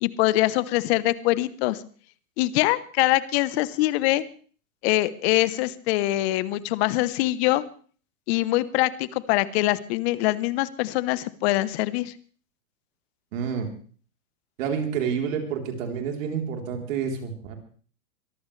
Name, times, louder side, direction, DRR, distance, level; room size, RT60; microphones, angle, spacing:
voice 1, 0.0-1.8 2.4-4.2 4.8-7.6 8.3-12.1, left 17 dB, 45° left, 16 dB, 1.1 m, -23 dB
voice 2, 13.3-13.7 14.6-17.5, right 7 dB, 65° right, 3 dB, 3.9 m, -29 dB
23.5 x 14.5 x 3.3 m, 0.42 s
hypercardioid pair, 125°, 43 cm